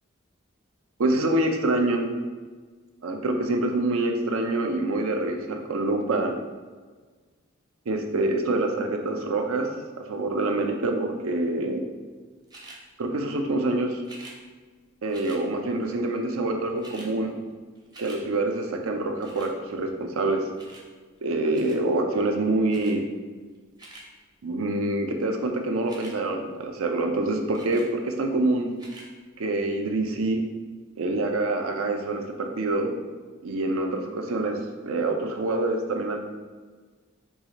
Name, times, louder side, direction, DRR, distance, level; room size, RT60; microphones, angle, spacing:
voice 1, 1.0-2.1 3.0-6.3 7.9-9.7 10.0-11.8 13.0-14.0 15.0-17.3 18.0-20.5 21.2-23.0 24.4-28.7 29.4-30.4 31.0-32.9 33.4-36.2, right 2 dB, 85° right, 4 dB, 0.6 m, -26 dB
sound 1, 12.5-12.8 14.0-14.4 15.1-15.4 16.4-16.5 16.6-17.1 17.5-18.2 19.2-19.5 20.6-20.9 21.5-21.8 22.7-23.0 23.6-24.1 25.8-26.2 27.5-27.9 28.7-29.1 29.7-29.8, right 2 dB, 20° right, 0.6 m, -46 dB
4.7 x 2.4 x 4.0 m, 1.4 s
head